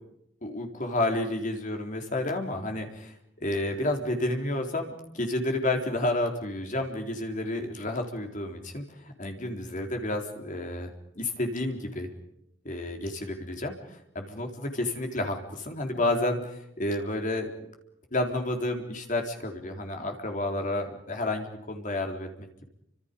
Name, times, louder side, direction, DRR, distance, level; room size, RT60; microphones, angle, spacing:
voice 1, 0.4-12.1 12.6-17.5 18.1-22.6, left 1 dB, 45° left, 4 dB, 3.9 m, -31 dB
29.5 x 26.0 x 5.4 m, 0.78 s
head